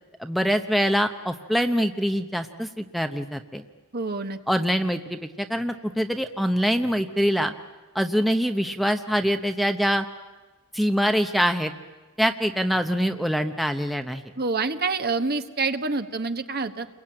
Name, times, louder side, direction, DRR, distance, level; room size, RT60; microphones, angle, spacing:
voice 1, 0.2-3.6 4.5-7.5 7.9-10.1 10.7-11.7 12.2-14.3, equal, ahead, 6 dB, 0.8 m, -24 dB
voice 2, 3.9-4.4 14.4-16.9, right 3 dB, 45° right, 8 dB, 1.3 m, -27 dB
30.0 x 22.0 x 8.8 m, 1.3 s
head